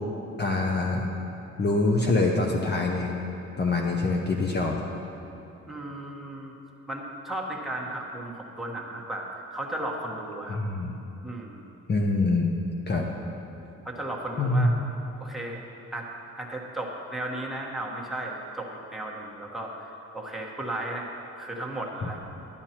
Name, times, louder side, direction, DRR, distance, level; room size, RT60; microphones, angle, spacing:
voice 1, 0.4-1.1 1.6-3.1 3.6-4.8 10.5-10.9 11.9-12.5 12.9-13.1 14.4-14.7, left 2 dB, 35° left, 0 dB, 0.8 m, -24 dB
voice 2, 5.7-6.5 6.9-10.6 11.2-11.7 13.8-14.7 15.2-15.6 15.9-16.1 16.4-21.1 21.3-22.2, right 1 dB, ahead, -1 dB, 1.3 m, -35 dB
11.0 x 10.5 x 2.9 m, 2.9 s
cardioid pair, 90°, 30 cm